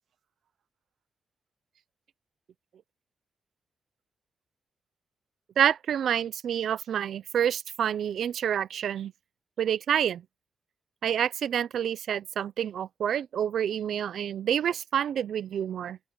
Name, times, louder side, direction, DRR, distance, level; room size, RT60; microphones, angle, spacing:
voice 1, 5.6-9.1 9.6-10.2 11.0-16.0, right 9 dB, 65° right, 0.5 m, -28 dB
open air
wide cardioid pair, 180°, 0 cm